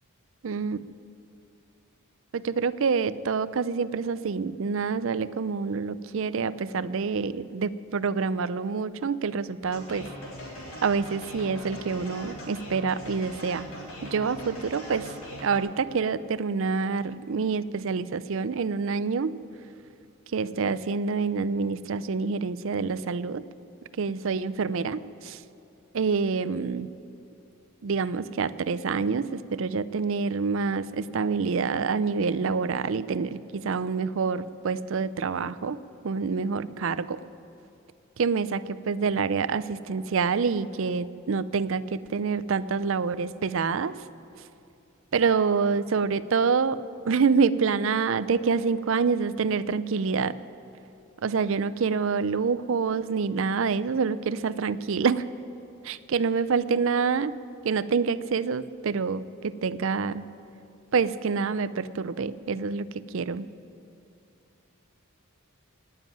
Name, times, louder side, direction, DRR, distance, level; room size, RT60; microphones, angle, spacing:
voice 1, 0.4-0.8 2.3-10.1 10.8-13.7 14.0-15.1 15.4-19.4 20.3-23.4 24.0-25.4 25.9-26.9 27.8-37.2 38.2-43.9 45.1-46.8 47.1-50.3 51.2-55.3 55.8-57.4 57.6-60.3 60.9-62.9 63.1-63.5, right 5 dB, 60° right, 16 dB, 0.4 m, -27 dB
sound 1, 9.6-15.6, equal, 65° left, 3.8 m, -41 dB
18.5 x 7.4 x 9.1 m, 2.6 s
head